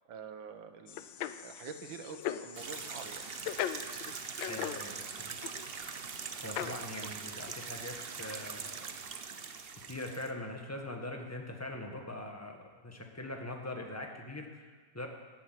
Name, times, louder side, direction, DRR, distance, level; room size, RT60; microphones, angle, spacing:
voice 1, 0.1-3.3 4.1-4.2, right 6 dB, 90° right, 7 dB, 1.9 m, -46 dB
sound 1, 0.9-5.0 5.3-5.9 6.4-7.1 7.5-7.7, left 10 dB, 90° left, 1.4 m, -40 dB
sound 2, 2.5-10.3, right 6 dB, 50° right, 0.7 m, -42 dB
voice 2, 4.5-5.3 6.4-8.8 9.8-15.1, left 1 dB, 10° left, 2 dB, 1.5 m, -42 dB
15.5 x 8.9 x 9.2 m, 1.5 s
omnidirectional pair, 2.0 m